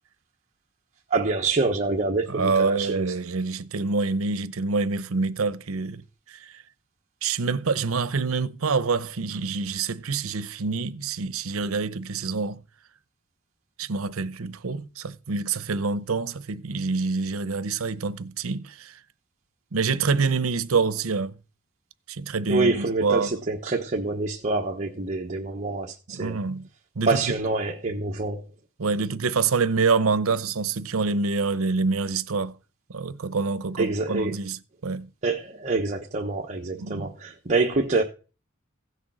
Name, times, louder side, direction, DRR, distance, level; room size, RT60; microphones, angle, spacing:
voice 1, 1.1-3.0 22.5-26.4 27.1-28.4 33.8-34.3 35.2-38.0, right 3 dB, 35° right, 1.2 m, -26 dB
voice 2, 2.3-6.0 6.3-6.4 7.2-12.6 13.8-18.9 19.7-21.3 22.1-23.3 26.1-26.7 27.0-27.3 28.8-32.5 32.9-35.1 36.8-37.1, right 4 dB, 85° right, 0.8 m, -26 dB
16.0 x 6.7 x 6.3 m
head